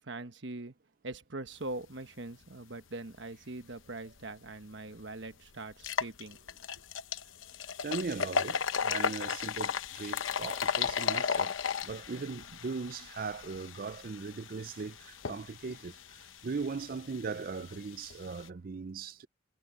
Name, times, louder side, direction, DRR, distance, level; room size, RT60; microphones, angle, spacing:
voice 1, 0.1-0.7 1.0-6.4, right 2 dB, 65° right, 1.3 m, -42 dB
sound 1, 4.5-4.6 5.0-5.1 5.7-18.5, left 6 dB, 85° left, 0.9 m, -35 dB
voice 2, 7.8-11.6 11.8-16.0 16.4-19.3, right 4 dB, 45° right, 0.4 m, -39 dB
head